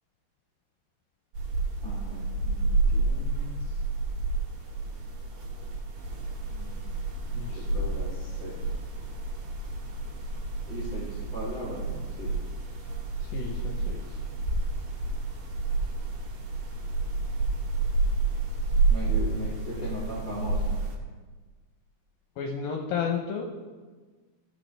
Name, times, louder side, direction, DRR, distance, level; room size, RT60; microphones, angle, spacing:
sound 1, 1.3-21.0, right 3 dB, 65° right, 3.2 m, -30 dB
voice 1, 1.8-3.8 6.5-7.0 7.5-8.6 10.6-12.3 18.9-20.8, right 1 dB, 90° right, -6 dB, 0.6 m, -39 dB
voice 2, 7.3-7.9 13.2-14.2 19.0-19.7 22.4-23.4, left 6 dB, 75° left, 1 dB, 2.3 m, -34 dB
13.0 x 6.5 x 3.3 m, 1.4 s
omnidirectional pair, 4.6 m